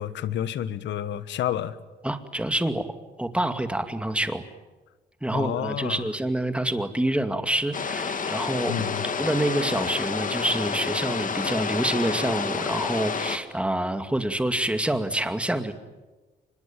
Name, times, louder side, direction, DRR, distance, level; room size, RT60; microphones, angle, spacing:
voice 1, 0.0-1.8 5.3-6.1 8.7-9.1, left 10 dB, 80° left, 15 dB, 1.4 m, -30 dB
voice 2, 2.0-2.9 3.2-4.4 5.2-8.7 9.2-15.7, right 1 dB, 5° right, 8 dB, 2.3 m, -27 dB
sound 1, 7.7-13.4, left 5 dB, 45° left, 2.3 m, -29 dB
25.0 x 21.5 x 9.1 m, 1.2 s
cardioid pair, 80°, 19 cm